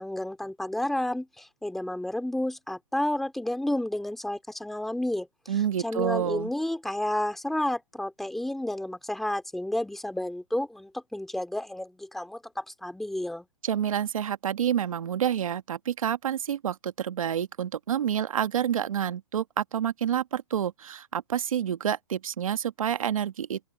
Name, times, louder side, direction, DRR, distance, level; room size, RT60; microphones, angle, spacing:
voice 1, 0.0-5.3 5.8-13.5, left 1 dB, ahead, 2.8 m, -31 dB
voice 2, 5.5-6.5 13.6-23.6, right 9 dB, 80° right, 1.5 m, -28 dB
open air
hypercardioid pair, 165°, 17 cm